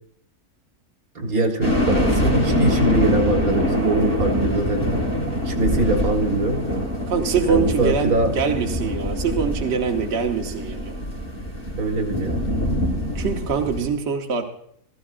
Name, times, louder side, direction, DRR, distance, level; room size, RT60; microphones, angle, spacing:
voice 1, 1.2-4.9 5.5-6.6 7.5-8.3 11.8-12.4, right 2 dB, 70° right, 3 dB, 1.9 m, -23 dB
sound 1, 1.6-13.9, equal, 35° left, 3.3 m, -24 dB
voice 2, 7.1-10.9 13.1-14.4, right 6 dB, 50° right, 2 dB, 1.2 m, -24 dB
16.0 x 14.0 x 2.5 m, 0.67 s
omnidirectional pair, 1.6 m